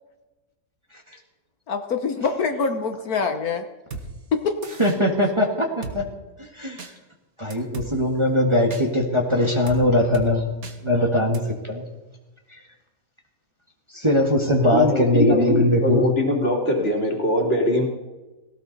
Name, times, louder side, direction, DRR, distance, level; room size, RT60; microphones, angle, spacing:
voice 1, 1.7-3.6 4.3-4.5, left 5 dB, 70° left, 6 dB, 1.6 m, -24 dB
Drum kit, 3.9-4.1 4.6-5.0 5.8-6.0 6.8-6.9 7.5-7.9 8.7-8.8 9.7-9.8 10.1-10.3 10.6-10.8 11.3-11.4, right 4 dB, 65° right, 2.0 m, -35 dB
voice 2, 4.8-6.0 6.6-6.8 7.4-10.5 10.8-11.8 13.9-16.1, left 1 dB, 20° right, 1 dB, 1.7 m, -20 dB
voice 3, 14.6-17.9, left 1 dB, 40° left, 1 dB, 3.1 m, -22 dB
18.0 x 17.0 x 4.1 m, 1.1 s
omnidirectional pair, 1.6 m